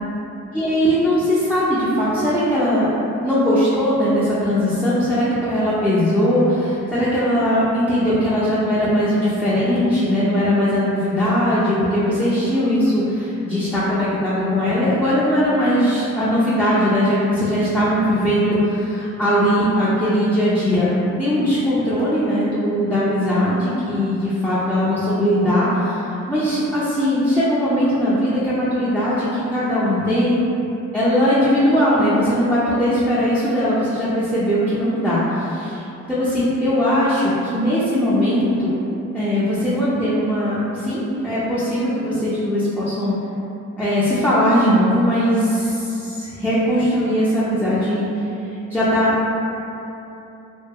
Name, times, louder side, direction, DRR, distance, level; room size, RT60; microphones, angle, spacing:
voice 1, 0.5-2.9 3.2-20.9 21.2-30.4 30.9-38.7 39.1-43.1 43.8-48.1 48.7-49.1, equal, 5° left, -11 dB, 0.5 m, -19 dB
2.1 x 2.0 x 3.5 m, 2.9 s
cardioid pair, 75°, 29 cm